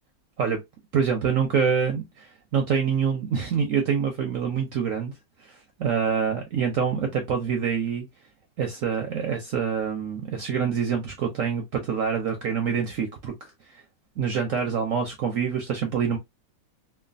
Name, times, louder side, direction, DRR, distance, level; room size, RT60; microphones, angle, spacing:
voice 1, 0.9-5.1 5.4-8.1 8.6-13.8 14.2-16.2, right 7 dB, 70° right, 0.8 m, -26 dB
3.1 x 2.2 x 2.4 m
omnidirectional pair, 1.9 m